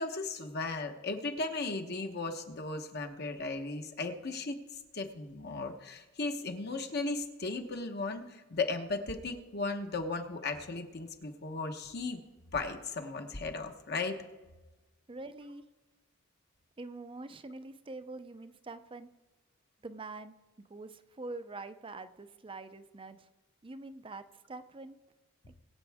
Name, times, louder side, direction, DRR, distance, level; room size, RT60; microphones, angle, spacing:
voice 1, 0.0-4.6 4.9-12.2 12.5-14.2, left 3 dB, 50° left, 5 dB, 1.1 m, -36 dB
voice 2, 15.1-15.6 16.8-19.1 19.8-20.3 20.7-23.3 23.6-25.0, right 3 dB, 25° right, 11 dB, 0.5 m, -45 dB
21.5 x 8.2 x 3.5 m, 1.1 s
head